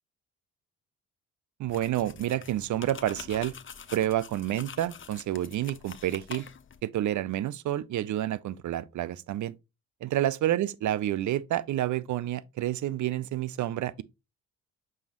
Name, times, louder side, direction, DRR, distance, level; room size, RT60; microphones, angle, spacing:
voice 1, 1.6-3.5 3.9-6.4 6.8-9.5 10.0-14.0, right 13 dB, 50° right, 0.6 m, -29 dB
sound 1, 1.7-6.8, left 7 dB, 30° left, 0.8 m, -45 dB
6.2 x 5.4 x 2.9 m
hypercardioid pair, 45°, 39 cm